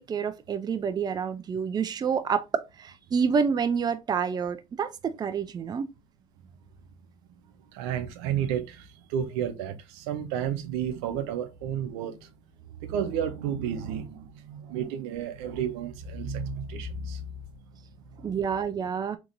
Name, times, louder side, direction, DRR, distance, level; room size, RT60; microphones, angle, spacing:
voice 1, 0.0-5.9 18.2-19.2, right 6 dB, 30° right, 0.4 m, -28 dB
voice 2, 7.7-12.3 12.7-17.4 18.1-18.3, right 8 dB, 85° right, 0.6 m, -32 dB
3.6 x 2.9 x 2.5 m
supercardioid pair, 90°, 14 cm